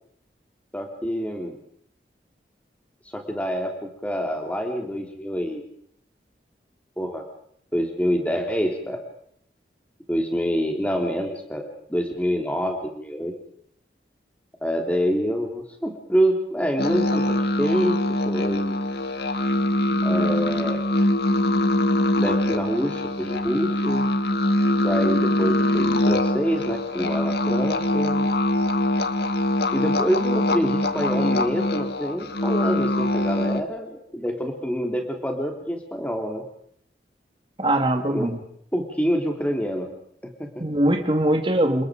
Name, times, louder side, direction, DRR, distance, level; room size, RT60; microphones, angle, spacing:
voice 1, 0.7-1.6 3.0-5.7 7.0-7.3 7.7-9.0 10.1-13.4 14.6-18.0 18.2-18.8 20.0-20.9 22.2-24.1 24.8-28.3 29.7-36.4 38.1-38.3 38.7-39.9 40.2-40.6, equal, 10° left, 3 dB, 3.4 m, -26 dB
sound 1, 16.8-33.6, left 1 dB, 70° left, 1.7 m, -23 dB
voice 2, 37.6-38.4 40.6-41.8, right 1 dB, 30° right, 6 dB, 2.5 m, -21 dB
29.0 x 20.0 x 5.1 m, 0.67 s
head